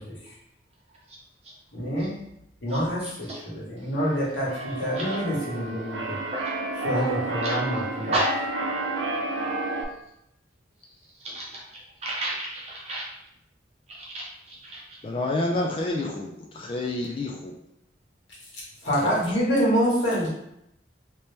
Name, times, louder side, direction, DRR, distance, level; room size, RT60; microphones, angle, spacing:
voice 1, 1.7-2.2 2.6-6.2 6.7-8.2 18.8-20.3, equal, 85° left, -6 dB, 1.4 m, -26 dB
voice 2, 2.7-3.4 4.9-5.2 6.3-6.6 6.9-7.8 8.1-8.3 11.2-13.1 13.9-15.0, right 1 dB, 35° right, -5 dB, 0.8 m, -33 dB
Keyboard (musical), 4.0-9.8, right 2 dB, 90° right, 0.5 m, -31 dB
voice 3, 15.0-17.5 19.0-19.4, left 2 dB, 30° left, 0 dB, 0.3 m, -29 dB
2.9 x 2.8 x 3.3 m, 0.80 s
head